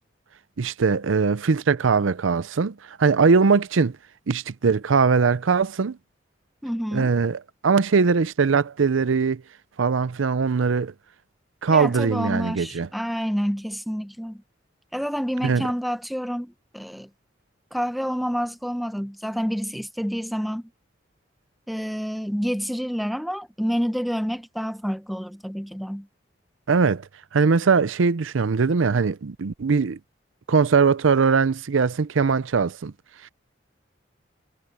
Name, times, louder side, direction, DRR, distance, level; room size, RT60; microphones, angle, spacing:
voice 1, 0.6-4.0 4.3-6.0 6.9-9.4 9.8-10.9 11.6-12.9 15.4-15.7 26.7-27.1 27.3-30.0 30.5-32.9 33.2-33.3, right 5 dB, 85° right, 0.6 m, -21 dB
voice 2, 6.6-7.1 11.7-14.4 14.9-17.1 17.7-20.7 21.7-26.1, equal, ahead, 0.8 m, -28 dB
head